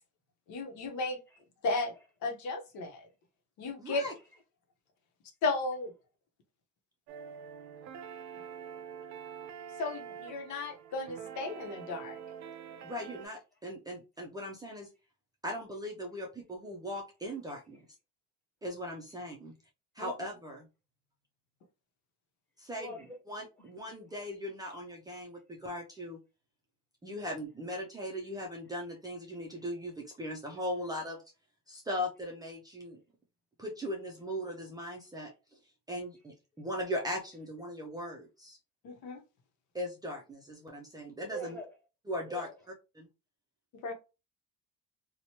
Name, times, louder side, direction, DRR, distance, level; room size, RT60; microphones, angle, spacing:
voice 1, 0.5-1.2 1.6-1.9 2.2-3.1 3.6-4.1 5.4-5.9 9.8-12.2 20.0-20.1 38.8-39.2 43.7-43.9, left 3 dB, 70° left, 0.9 m, -34 dB
voice 2, 3.8-4.1 12.8-14.9 15.4-17.8 18.6-19.5 20.0-20.7 22.6-22.9 23.3-26.2 27.0-31.2 31.7-33.0 33.6-35.6 35.9-38.6 39.7-41.6 42.1-42.5 43.0-43.1, equal, 15° right, 0.4 m, -39 dB
sound 1, 7.1-13.3, right 8 dB, 65° right, 0.5 m, -45 dB
voice 3, 22.8-23.1 23.6-23.7 41.3-41.7 42.2-42.5, right 2 dB, 5° left, 1.2 m, -42 dB
2.9 x 2.1 x 2.8 m
cardioid pair, 125°, 30 cm